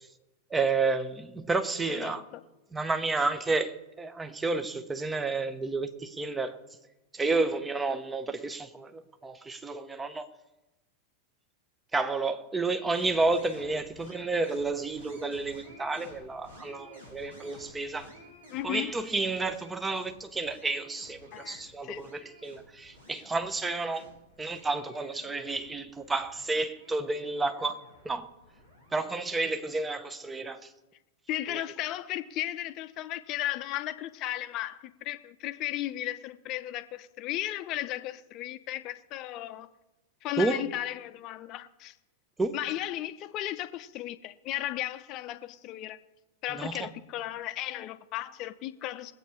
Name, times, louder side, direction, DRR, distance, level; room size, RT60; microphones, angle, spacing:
voice 1, 0.5-2.2 2.7-6.6 7.1-10.3 11.9-18.1 18.6-24.1 24.4-28.3 28.9-30.7 31.5-31.6 40.4-40.6 42.4-42.6 46.5-46.9, right 3 dB, 10° right, 1.0 m, -31 dB
voice 2, 1.9-2.4 18.5-18.9 21.3-22.0 31.3-39.7 40.2-41.9 42.5-46.0 46.4-49.1, left 14 dB, 40° left, 0.7 m, -35 dB
sound 1, 12.9-29.9, left 1 dB, 70° right, 4.2 m, -53 dB
21.0 x 8.5 x 4.9 m
figure-of-eight pair, 90°, 0 cm